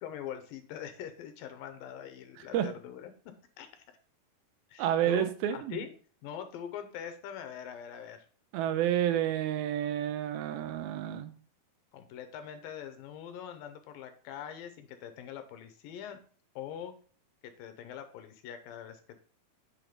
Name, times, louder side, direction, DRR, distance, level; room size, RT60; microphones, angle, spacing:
voice 1, 0.0-3.1 3.6-4.0 4.7-5.9 6.2-8.3 11.9-16.2 16.6-16.9 17.4-19.2, left 9 dB, 75° left, 8 dB, 2.4 m, -43 dB
voice 2, 4.8-5.8 8.5-11.3, right 11 dB, 85° right, 10 dB, 2.6 m, -30 dB
8.6 x 3.6 x 5.0 m, 0.42 s
omnidirectional pair, 4.2 m